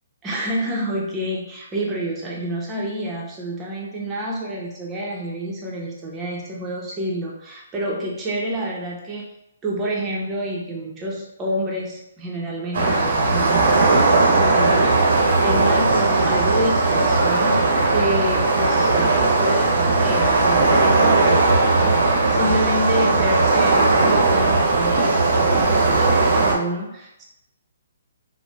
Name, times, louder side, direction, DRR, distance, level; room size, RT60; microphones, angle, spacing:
voice 1, 0.2-9.2 9.6-27.2, equal, 15° right, -3 dB, 0.6 m, -28 dB
sound 1, 12.7-26.5, right 3 dB, 60° right, 0.6 m, -18 dB
3.2 x 2.0 x 2.2 m, 0.84 s
hypercardioid pair, 145°, 0 cm